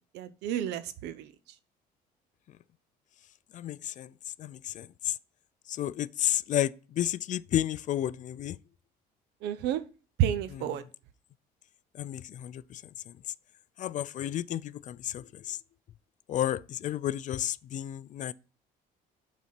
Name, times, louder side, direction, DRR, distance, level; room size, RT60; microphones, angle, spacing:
voice 1, 0.1-1.3 9.4-9.8 10.2-10.8, right 10 dB, 85° right, 0.8 m, -30 dB
voice 2, 3.5-4.1 4.4-5.1 5.8-8.6 12.0-12.8 13.8-15.6 16.3-18.3, left 12 dB, 50° left, 0.4 m, -32 dB
7.4 x 4.1 x 5.8 m
cardioid pair, 110°, 17 cm